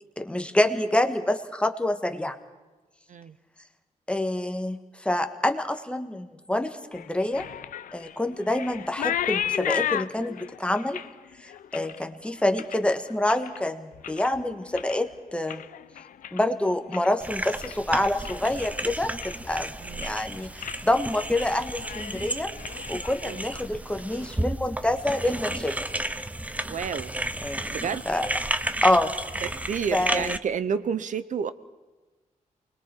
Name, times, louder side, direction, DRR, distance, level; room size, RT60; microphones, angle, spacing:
voice 1, 0.2-2.4 4.1-7.5 7.9-11.0 11.4-15.6 16.3-22.5 22.9-25.8 27.4-27.6 28.0-28.3 28.8-29.1 29.9-30.3, left 1 dB, 10° left, 6 dB, 1.5 m, -27 dB
sound 1, 6.9-13.6 13.9-14.4 14.7-17.2 17.5-17.9 18.2-18.4 18.8-19.6 19.9-20.3 20.6-20.8 21.1-21.5 21.8-23.6, left 10 dB, 85° left, 0.6 m, -34 dB
sound 2, 17.2-30.4, right 1 dB, 10° right, 0.7 m, -33 dB
voice 2, 26.7-27.1 27.7-28.0 29.4-31.5, right 7 dB, 70° right, 15 dB, 0.8 m, -30 dB
29.0 x 21.5 x 4.6 m, 1.2 s
cardioid pair, 85°, 14 cm